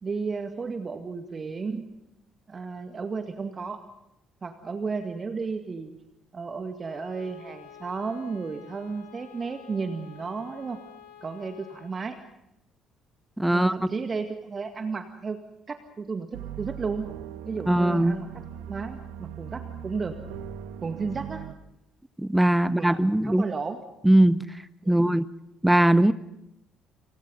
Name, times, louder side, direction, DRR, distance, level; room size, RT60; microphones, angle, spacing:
voice 1, 0.0-1.9 2.5-3.8 4.4-5.9 6.3-10.8 11.2-12.2 13.5-15.4 15.7-17.1 17.5-18.3 18.7-20.2 20.8-21.5 22.6-23.8 24.8-25.1, right 4 dB, 35° right, 7 dB, 2.0 m, -33 dB
Bowed string instrument, 6.8-12.0, left 9 dB, 65° left, 5.6 m, -49 dB
voice 2, 13.4-13.7 17.7-18.1 22.2-23.4 24.0-24.4 24.9-25.2 25.6-26.1, right 1 dB, 5° right, 16 dB, 0.9 m, -20 dB
sound 1, 16.3-21.6, right 9 dB, 65° right, 1.4 m, -39 dB
29.5 x 28.5 x 3.9 m, 0.86 s
figure-of-eight pair, 50°, 0 cm